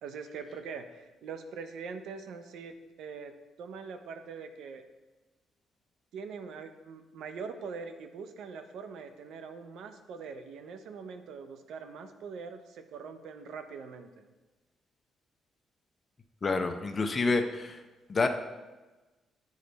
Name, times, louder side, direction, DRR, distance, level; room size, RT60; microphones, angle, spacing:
voice 1, 0.0-3.3 3.6-4.8 6.1-14.3, right 5 dB, 80° right, 8 dB, 0.5 m, -43 dB
voice 2, 16.4-17.8 18.1-18.3, left 3 dB, 35° left, 6 dB, 0.5 m, -28 dB
8.4 x 3.2 x 4.0 m, 1.2 s
cardioid pair, 90°, 0 cm